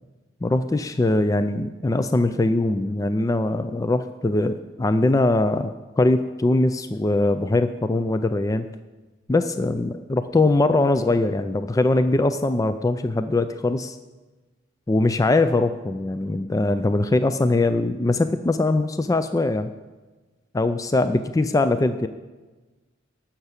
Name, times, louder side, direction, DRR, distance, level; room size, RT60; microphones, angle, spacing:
voice 1, 0.4-8.7 9.3-14.0 14.9-19.7 20.5-22.1, left 2 dB, 15° left, 10 dB, 0.3 m, -22 dB
12.0 x 5.9 x 8.1 m, 1.2 s
head